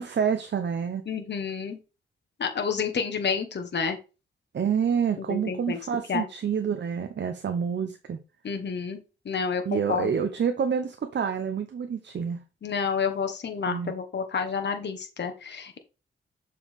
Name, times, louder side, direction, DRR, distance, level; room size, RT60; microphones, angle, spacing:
voice 1, 0.0-1.0 4.5-8.2 9.6-12.4 13.7-13.9, right 7 dB, 60° right, 7 dB, 0.8 m, -28 dB
voice 2, 1.1-1.8 2.4-4.0 5.2-5.8 6.1-6.2 8.4-10.1 12.6-15.8, left 6 dB, 60° left, 5 dB, 1.4 m, -29 dB
7.0 x 4.6 x 3.6 m, 0.30 s
cardioid pair, 70°, 21 cm